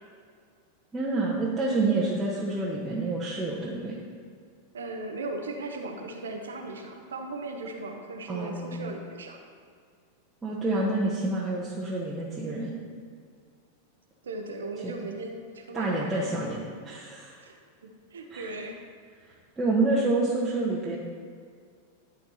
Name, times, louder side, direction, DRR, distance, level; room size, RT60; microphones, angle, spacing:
voice 1, 0.9-4.0 8.3-8.9 10.4-12.7 14.8-14.9 15.7-17.4 18.3-18.5 19.2-21.0, right 2 dB, 15° right, -6 dB, 1.3 m, -28 dB
voice 2, 4.7-9.4 14.2-16.3 17.4-17.6 17.8-18.8, right 2 dB, 65° right, 3 dB, 1.0 m, -37 dB
12.0 x 4.7 x 5.7 m, 2.1 s
figure-of-eight pair, 90°, 0 cm